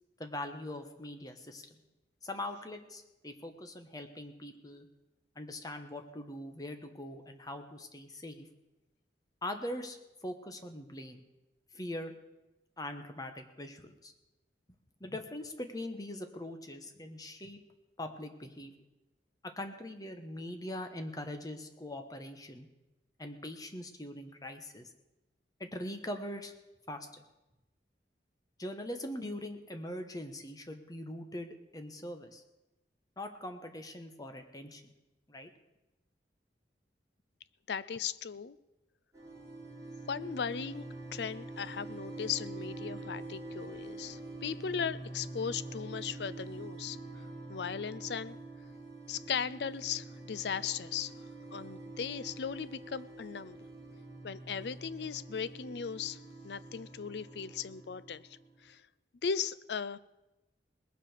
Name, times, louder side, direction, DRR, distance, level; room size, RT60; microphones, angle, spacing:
voice 1, 0.2-1.8 2.2-4.9 5.3-8.5 9.4-10.0 10.2-11.2 11.7-12.1 12.8-14.1 15.0-17.6 18.0-18.7 19.4-22.7 23.2-24.9 25.6-26.5 26.9-27.1 28.6-32.4 33.2-34.8 35.3-35.5, left 1 dB, 20° left, 6 dB, 1.2 m, -42 dB
voice 2, 37.7-38.6 40.1-40.9 41.1-47.0 47.5-48.4 49.1-51.1 51.5-53.6 54.2-58.2 58.6-58.8 59.2-60.0, left 7 dB, 70° left, 17 dB, 0.5 m, -37 dB
sound 1, 39.1-58.7, right 2 dB, 20° right, 4.5 m, -46 dB
20.0 x 7.5 x 6.6 m, 1.0 s
head